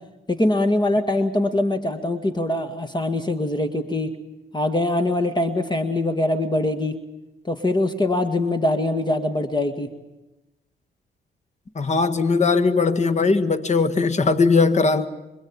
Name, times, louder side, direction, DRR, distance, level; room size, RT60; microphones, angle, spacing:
voice 1, 0.3-4.1 4.5-7.0 7.5-9.9, left 1 dB, 25° left, 1.9 m, -23 dB
voice 2, 11.8-15.1, left 4 dB, 40° left, 1.8 m, -19 dB
26.0 x 22.0 x 8.8 m
cardioid pair, 85°, 19 cm